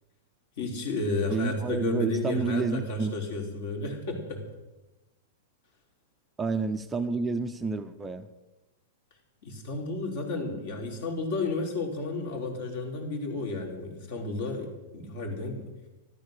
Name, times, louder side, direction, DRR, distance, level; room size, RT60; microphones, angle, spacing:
voice 1, 0.6-4.4 9.4-15.6, left 2 dB, 55° left, 2 dB, 4.3 m, -32 dB
voice 2, 1.3-3.1 6.4-8.3, right 4 dB, 10° right, 7 dB, 0.6 m, -29 dB
14.0 x 13.0 x 6.8 m, 1.1 s
supercardioid pair, 155°, 0 cm